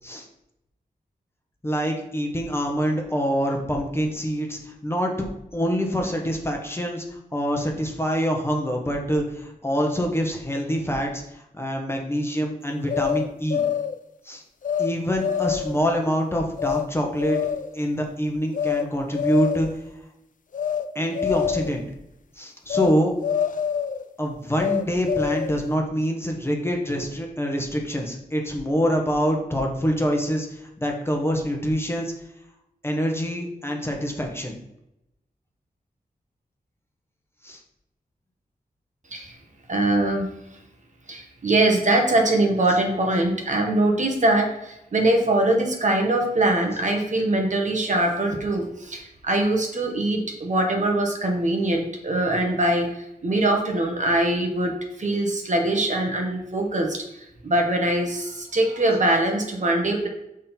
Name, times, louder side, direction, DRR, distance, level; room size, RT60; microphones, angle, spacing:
voice 1, 1.6-5.3 5.5-13.6 14.2-14.4 14.8-17.4 17.7-19.7 20.9-21.8 22.4-23.1 24.2-32.1 32.8-34.6 37.4-37.6, equal, 15° left, 1 dB, 1.1 m, -25 dB
sound 1, 12.9-14.0 14.6-14.9 15.2-15.8 16.6-16.9 17.2-17.7 18.5-18.9 19.1-19.8 20.5-20.9 21.1-21.8 22.7-23.0 23.2-24.0 24.6-25.6, left 8 dB, 55° left, 0.4 m, -25 dB
voice 2, 39.7-40.2 41.1-52.9 53.2-54.7 55.0-57.0 57.4-60.1, right 1 dB, 50° right, 2 dB, 1.2 m, -22 dB
7.4 x 3.7 x 4.3 m, 0.84 s
wide cardioid pair, 110°, 16 cm